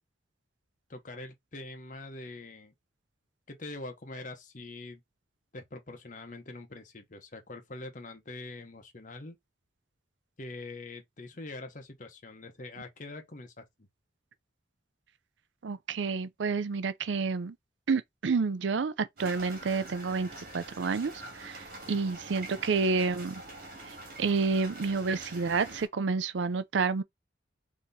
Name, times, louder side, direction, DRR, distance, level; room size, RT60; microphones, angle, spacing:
voice 1, 0.9-2.7 3.5-5.0 5.5-9.4 10.4-13.9 21.9-22.0, left 2 dB, 45° left, 0.9 m, -44 dB
voice 2, 15.6-17.6 17.9-23.4 23.8-27.0, right 4 dB, 85° right, 0.5 m, -29 dB
sound 1, 19.2-25.9, right 1 dB, 50° right, 2.1 m, -45 dB
3.7 x 3.0 x 4.0 m
head